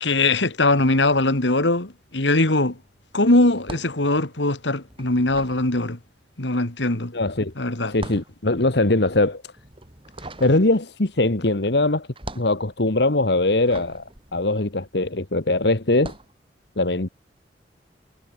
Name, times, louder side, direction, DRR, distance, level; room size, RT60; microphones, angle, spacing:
voice 1, 0.0-2.8 3.1-6.0 6.4-7.1 7.6-7.9, left 2 dB, 80° left, 2.7 m, -21 dB
sound 1, 0.6-1.9 2.1-15.3 15.9-16.4, right 2 dB, 30° right, 8.0 m, -42 dB
voice 2, 7.1-7.5 7.9-9.4 10.4-12.1 12.3-14.0 14.3-16.1 16.8-17.1, left 2 dB, 65° left, 1.6 m, -21 dB
head